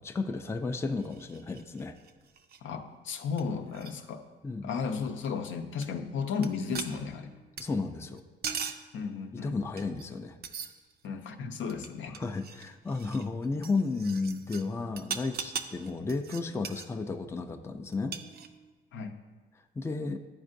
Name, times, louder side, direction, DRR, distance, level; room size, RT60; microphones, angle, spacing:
voice 1, 0.0-2.0 4.4-4.7 7.6-8.2 9.3-10.4 12.2-18.2 19.8-20.2, left 3 dB, 15° left, 6 dB, 0.4 m, -33 dB
sound 1, 1.0-2.6 3.1-3.2 3.4-3.5 3.7-3.9 5.8-5.9 6.4-6.5 6.7-7.6 8.2-8.9 9.8-10.2 10.4-11.1 11.6-14.6 15.0-16.9 17.9-18.7, right 6 dB, 50° right, 0.5 m, -40 dB
voice 2, 2.6-4.2 4.6-7.3 8.9-9.6 11.0-12.2 18.9-19.2, left 5 dB, 70° left, 6 dB, 0.6 m, -34 dB
11.0 x 4.3 x 2.6 m, 1.3 s
cardioid pair, 90°, 20 cm